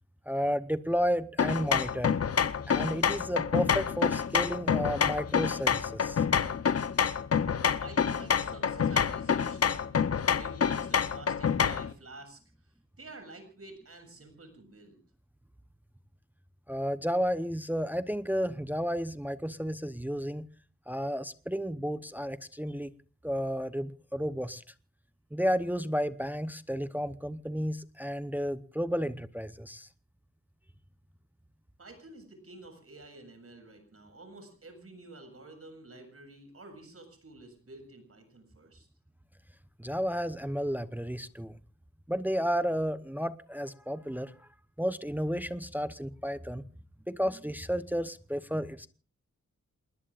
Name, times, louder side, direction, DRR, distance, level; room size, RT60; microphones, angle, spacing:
voice 1, 0.3-2.2 2.7-6.2 16.7-20.5 20.9-22.9 23.2-24.6 25.3-29.9 39.8-41.6 42.1-44.5 44.8-46.6 47.1-48.9, equal, 5° right, 12 dB, 0.8 m, -32 dB
sound 1, 1.4-11.9, left 7 dB, 55° left, 0.8 m, -27 dB
voice 2, 7.8-10.0 10.3-15.0 31.8-38.9, right 2 dB, 50° right, 6 dB, 7.2 m, -50 dB
28.0 x 20.5 x 2.5 m, 0.40 s
wide cardioid pair, 90°, 30 cm